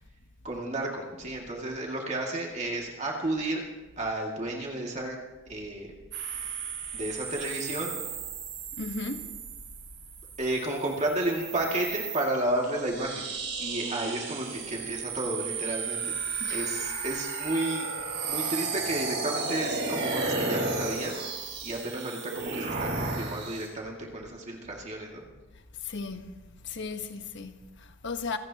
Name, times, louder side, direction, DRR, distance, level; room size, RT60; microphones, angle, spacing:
voice 1, 0.4-3.6 4.0-5.2 5.5-5.9 6.9-8.0 10.4-13.3 13.6-17.9 18.3-21.2 21.6-25.2, right 1 dB, 35° right, 2.2 m, -32 dB
sound 1, 6.1-23.7, right 4 dB, 60° right, 5.8 m, -34 dB
voice 2, 8.8-9.3 16.4-16.7 25.8-26.3 26.6-28.4, left 4 dB, 60° left, 1.2 m, -36 dB
27.0 x 17.0 x 2.9 m
head